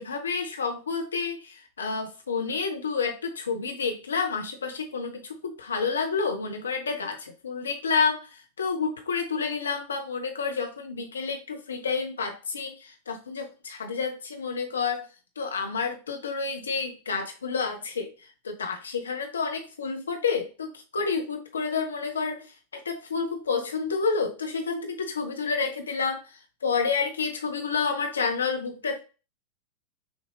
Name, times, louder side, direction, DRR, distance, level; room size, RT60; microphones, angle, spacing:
voice 1, 0.0-8.3 8.6-15.1 15.4-18.1 18.4-22.4 22.7-26.2 26.6-29.0, left 5 dB, 70° left, 4 dB, 0.7 m, -29 dB
6.3 x 2.6 x 3.3 m, 0.33 s
figure-of-eight pair, 90°, 0 cm